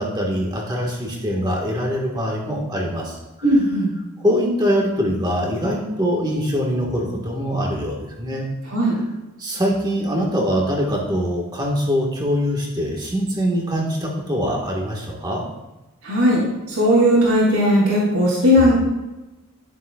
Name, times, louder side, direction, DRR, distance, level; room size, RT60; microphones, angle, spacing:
voice 1, 0.0-3.2 4.2-8.4 9.4-15.4, equal, 20° right, -1 dB, 1.5 m, -23 dB
voice 2, 3.4-3.9 8.7-8.9 16.0-16.4 16.7-18.7, equal, 85° right, -6 dB, 2.7 m, -17 dB
12.5 x 7.2 x 2.4 m, 1.0 s
head